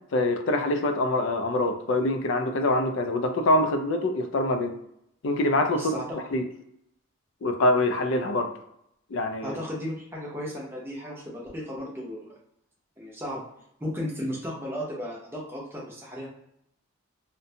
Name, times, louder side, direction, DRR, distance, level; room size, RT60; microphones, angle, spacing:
voice 1, 0.1-4.7 5.2-6.0 6.3-6.4 7.4-8.5 9.1-9.6, left 1 dB, 55° left, 6 dB, 0.3 m, -24 dB
voice 2, 5.7-6.2 9.4-12.3 13.0-13.4 13.8-16.3, equal, 10° right, -4 dB, 0.6 m, -35 dB
2.5 x 2.1 x 2.7 m, 0.76 s
head